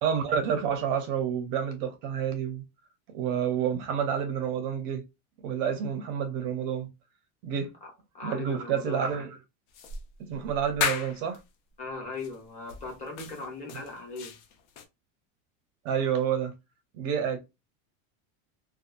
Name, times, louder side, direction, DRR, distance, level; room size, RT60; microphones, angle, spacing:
voice 1, 0.0-2.6 3.1-5.0 5.4-6.9 7.4-7.7 8.2-9.4 10.2-11.4 13.7-13.8 15.8-16.5 17.0-17.4, right 8 dB, 45° right, 0.6 m, -29 dB
voice 2, 7.8-9.2 11.8-14.3, left 3 dB, 20° left, 1.1 m, -39 dB
Walking in slippers, 9.7-11.4 12.2-12.4 12.7-14.9, left 7 dB, 60° left, 0.6 m, -35 dB
2.6 x 2.3 x 2.4 m
cardioid pair, 175°, 40 cm